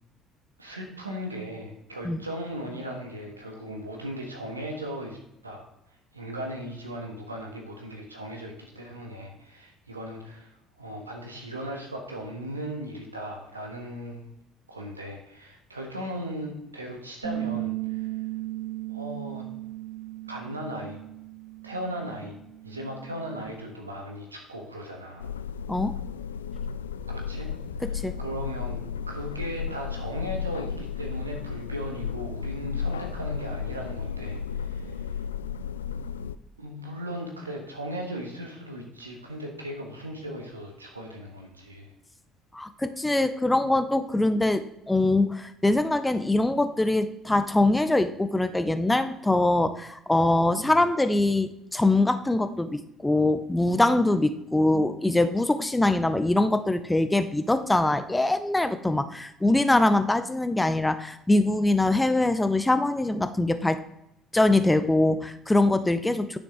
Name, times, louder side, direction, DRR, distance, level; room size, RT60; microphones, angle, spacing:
voice 1, 0.6-5.2 5.4-5.7 6.1-10.5 10.8-14.3 14.7-18.1 18.9-19.4 20.3-21.0 21.6-22.4 22.6-25.3 27.1-27.5 27.8-35.0 36.6-41.9, equal, 85° right, 1 dB, 1.5 m, -37 dB
Bass guitar, 17.2-23.5, right 15 dB, 30° right, 2.6 m, -36 dB
sound 1, 25.2-36.4, left 6 dB, 75° left, 0.3 m, -33 dB
voice 2, 42.5-63.8 64.3-66.4, left 2 dB, 10° left, 11 dB, 0.7 m, -23 dB
10.0 x 6.1 x 3.8 m, 0.83 s
figure-of-eight pair, 55°, 0 cm